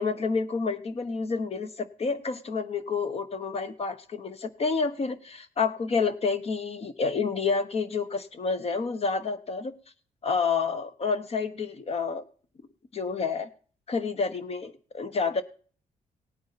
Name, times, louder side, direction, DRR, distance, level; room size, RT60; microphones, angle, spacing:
voice 1, 0.0-9.7 10.2-12.2 12.9-13.5 13.9-15.4, left 4 dB, 45° left, 10 dB, 1.1 m, -29 dB
17.5 x 9.2 x 4.2 m, 0.42 s
cardioid pair, 115°, 14 cm